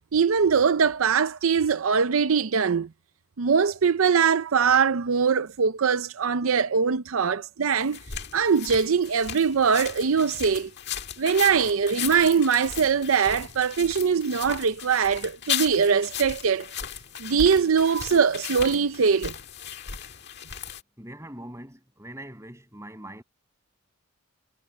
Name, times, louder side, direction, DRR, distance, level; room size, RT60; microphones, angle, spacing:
voice 1, 0.1-2.9 3.4-8.0 8.3-10.7 11.2-16.7 17.2-19.3, right 6 dB, 80° right, 0.6 m, -22 dB
sound 1, 7.8-20.8, left 8 dB, 50° left, 1.8 m, -36 dB
voice 2, 21.0-23.2, right 1 dB, 15° right, 7.7 m, -42 dB
head